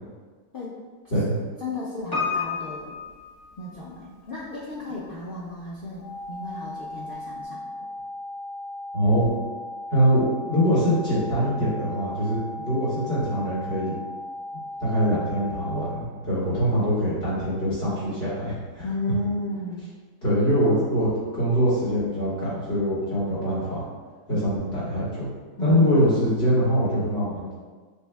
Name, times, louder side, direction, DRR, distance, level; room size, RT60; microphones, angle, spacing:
voice 1, 1.0-3.0 3.6-7.6 18.8-19.9 24.3-24.5 25.6-26.0, left 2 dB, 75° left, -7 dB, 0.4 m, -33 dB
Piano, 2.1-4.2 4.4-4.5, left 5 dB, 20° left, 0.6 m, -31 dB
sound 1, 6.0-16.0, left 1 dB, 50° right, 1.3 m, -37 dB
voice 2, 8.9-9.3 9.9-10.2 10.5-13.9 14.8-18.9 20.2-23.9 24.3-25.3 25.6-27.5, equal, 40° left, -9 dB, 1.7 m, -23 dB
6.4 x 2.7 x 2.2 m, 1.5 s
omnidirectional pair, 1.7 m